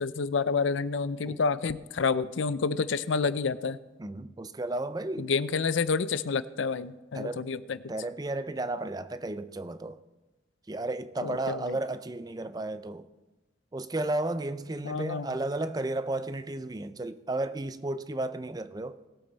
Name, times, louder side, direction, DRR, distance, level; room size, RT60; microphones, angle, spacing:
voice 1, 0.0-3.8 5.2-7.8 11.2-11.8 14.8-15.4, left 5 dB, 80° left, 0.5 m, -29 dB
voice 2, 4.0-5.3 7.1-7.5 7.9-10.0 10.7-13.0 13.7-19.0, right 2 dB, 20° right, 0.5 m, -33 dB
19.5 x 8.6 x 4.0 m
head